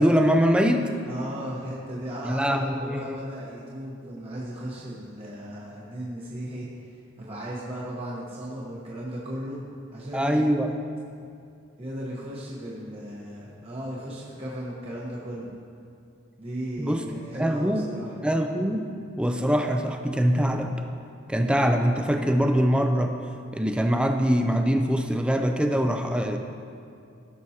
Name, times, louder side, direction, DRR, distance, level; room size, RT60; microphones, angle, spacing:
voice 1, 0.0-0.9 2.2-3.2 10.1-10.7 16.8-17.0 17.4-17.9 18.2-18.9 19.2-20.7 21.3-23.1 23.5-26.4, equal, 5° right, 4 dB, 0.4 m, -23 dB
voice 2, 1.0-6.7 7.2-10.6 11.8-15.5 16.4-18.1, right 1 dB, 30° right, -6 dB, 1.0 m, -36 dB
15.0 x 6.2 x 2.8 m, 2.4 s
head